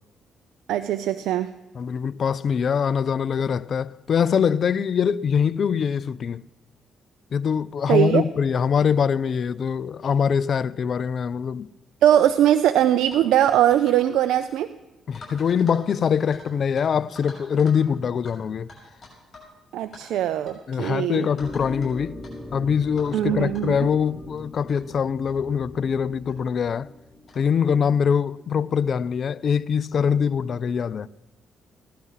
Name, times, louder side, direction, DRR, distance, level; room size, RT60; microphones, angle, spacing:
voice 1, 0.7-1.5 7.9-8.2 12.0-14.7 19.7-21.3 23.1-23.9, right 11 dB, 85° right, 0.4 m, -20 dB
voice 2, 1.7-6.4 7.3-11.7 15.1-18.7 20.7-22.1 22.5-26.9 27.4-31.1, left 7 dB, 55° left, 0.4 m, -23 dB
sound 1, 13.1-13.3 13.7-14.1 14.3-14.6 15.1-16.5 16.8-16.9 17.2-17.8 18.3-18.4 18.7-19.5 19.8-20.0 20.5-20.6 21.1-21.9 22.2-22.3 23.0-23.2 23.5-23.6 24.4-24.5 24.7-24.8 25.3-25.4 26.3-26.4 27.3-27.5, left 3 dB, 40° left, 6.3 m, -45 dB
sound 2, 21.4-27.9, left 1 dB, 15° left, 1.0 m, -40 dB
16.5 x 11.0 x 5.6 m
cardioid pair, 90°, 0 cm